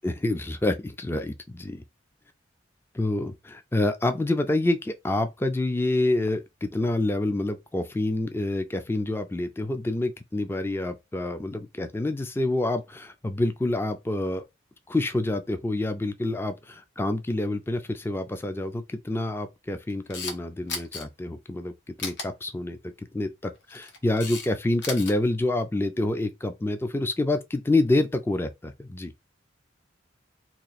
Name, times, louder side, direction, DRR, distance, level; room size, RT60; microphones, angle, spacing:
voice 1, 0.0-1.8 2.9-14.4 14.9-22.8 23.1-29.1, left 2 dB, 10° left, 0.3 m, -27 dB
Camera, 19.9-20.4 20.7-21.0 22.0-22.3 23.6-24.5 24.7-25.1, left 4 dB, 70° left, 1.0 m, -34 dB
2.9 x 2.3 x 4.1 m
head